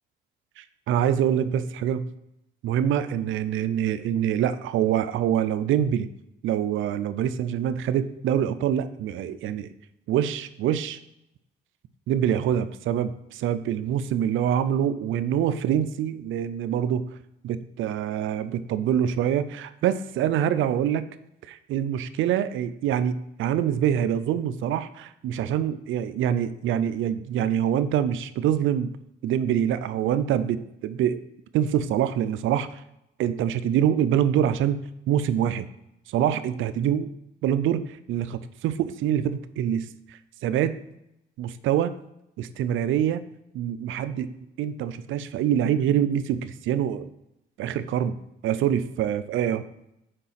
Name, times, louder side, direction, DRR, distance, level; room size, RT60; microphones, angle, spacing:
voice 1, 0.6-2.1 2.6-6.1 6.4-9.7 10.1-11.0 12.1-17.1 17.4-21.0 21.5-28.9 29.2-31.2 31.5-32.8 33.2-34.8 35.1-35.7 36.1-37.1 37.4-40.8 41.4-41.9 42.4-43.2 43.5-44.3 44.6-47.1 47.6-48.2 48.4-49.6, right 10 dB, 85° right, 13 dB, 0.5 m, -25 dB
6.7 x 5.1 x 5.6 m, 0.83 s
cardioid pair, 90°, 20 cm